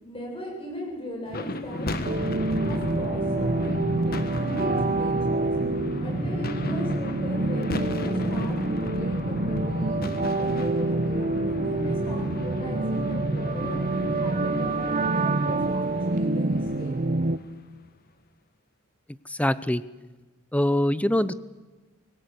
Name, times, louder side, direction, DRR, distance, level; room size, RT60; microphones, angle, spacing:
voice 1, 0.0-2.2 2.6-5.5 6.0-10.0 10.4-14.8 15.1-17.1, equal, 25° left, 0 dB, 8.0 m, -38 dB
sound 1, 1.3-17.7, left 1 dB, 50° left, 1.5 m, -34 dB
sound 2, 2.0-17.4, right 2 dB, 40° right, 0.7 m, -27 dB
voice 2, 19.3-19.8 20.5-21.4, left 1 dB, 5° left, 16 dB, 0.6 m, -23 dB
25.0 x 18.5 x 8.3 m, 1.2 s
head